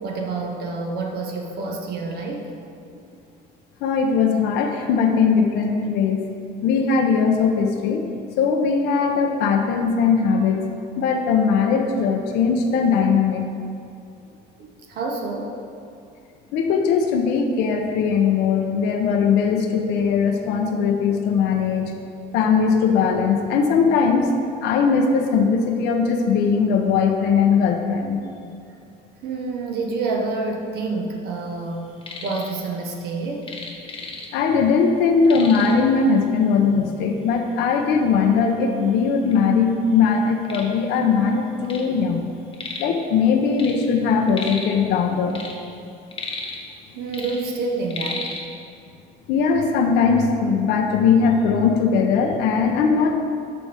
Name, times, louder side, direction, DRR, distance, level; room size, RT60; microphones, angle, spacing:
voice 1, 0.0-2.5 14.6-15.6 29.2-31.9 32.2-33.5 46.9-48.3, right 3 dB, 70° right, 1 dB, 0.9 m, -28 dB
voice 2, 3.8-6.2 6.6-8.0 8.4-10.6 11.0-13.5 16.5-21.9 22.3-24.3 24.6-28.2 34.3-42.3 42.8-45.4 49.3-53.2, left 5 dB, 90° left, 3 dB, 0.6 m, -20 dB
sound 1, 31.8-32.5 32.8-34.6 34.9-35.0 35.2-35.9 36.7-36.8 37.3-37.4 38.1-38.2 38.5-39.4 39.9-41.9 42.2-43.0 43.3-44.8 45.2-46.8 47.1-48.4, left 3 dB, 30° left, 1.1 m, -34 dB
12.0 x 4.2 x 3.4 m, 2.5 s
cardioid pair, 110°, 17 cm